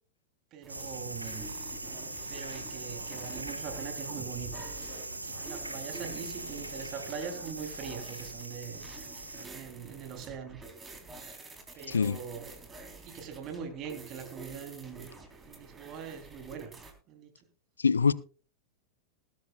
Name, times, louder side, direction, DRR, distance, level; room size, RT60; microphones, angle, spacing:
voice 1, 0.5-1.5 1.8-1.9 2.3-4.7 5.2-8.9 9.4-10.6 11.7-12.5 13.0-15.1 15.4-16.7 17.1-17.4, right 7 dB, 35° right, 3.2 m, -42 dB
sound 1, 0.6-16.9, right 3 dB, 15° right, 3.4 m, -48 dB
sound 2, 0.7-9.5, right 2 dB, 85° right, 1.6 m, -40 dB
voice 2, 11.9-12.2 17.8-18.1, left 5 dB, 75° left, 0.4 m, -24 dB
20.0 x 12.0 x 2.3 m
figure-of-eight pair, 90°, 0 cm